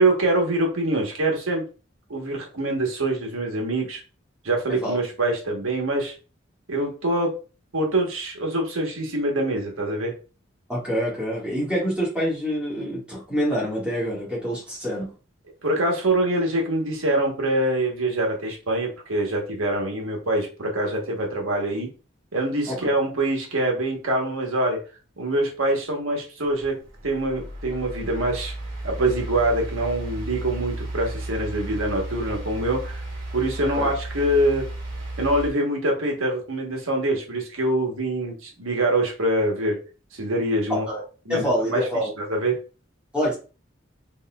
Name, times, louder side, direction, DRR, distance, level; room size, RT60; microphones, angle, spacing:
voice 1, 0.0-1.6 2.1-4.0 4.4-6.1 6.7-7.3 7.7-10.1 15.6-21.9 22.3-24.8 25.2-26.8 27.0-28.5 28.8-33.0 33.3-34.6 35.2-39.8 40.1-40.9 41.3-41.8 42.2-42.6, right 1 dB, 90° right, 1 dB, 1.2 m, -24 dB
voice 2, 10.7-15.1 22.7-22.9 33.8-33.9 40.7-41.0 41.3-42.1 43.1-43.4, equal, 5° right, -6 dB, 1.8 m, -26 dB
sound 1, 26.4-35.5, right 1 dB, 70° right, 1.8 m, -34 dB
4.1 x 3.1 x 2.3 m, 0.34 s
head